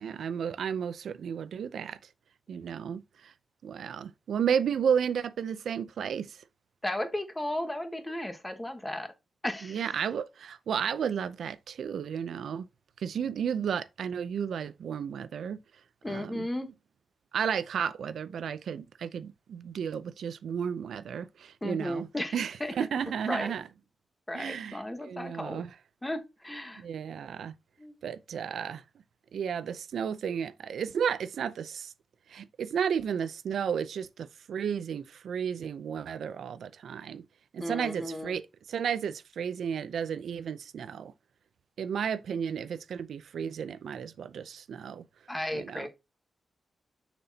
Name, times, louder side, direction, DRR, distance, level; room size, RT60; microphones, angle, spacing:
voice 1, 0.0-2.0 2.5-3.3 3.6-6.4 9.6-12.7 13.0-15.6 16.1-16.5 17.3-22.1 22.3-23.6 24.3-25.7 26.8-27.5 28.0-28.8 29.3-31.9 32.3-37.2 37.5-38.4 38.7-41.1 41.8-45.0 45.5-45.9, right 7 dB, 90° right, 0.5 m, -33 dB
voice 2, 6.8-9.1 9.4-9.9 16.0-16.7 21.6-22.7 23.3-23.5 24.3-25.6 26.0-26.8 27.8-27.9 37.6-38.3 45.3-45.9, left 1 dB, 10° left, 1.2 m, -35 dB
6.7 x 6.1 x 2.8 m
wide cardioid pair, 135°, 0 cm